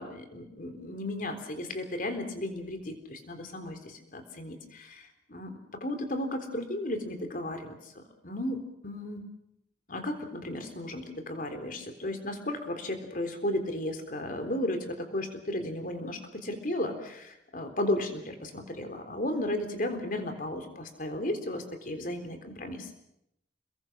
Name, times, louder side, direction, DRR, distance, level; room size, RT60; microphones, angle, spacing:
voice 1, 0.0-9.2 9.9-22.9, left 1 dB, 50° left, 7 dB, 3.8 m, -34 dB
29.0 x 22.0 x 6.3 m, 0.79 s
head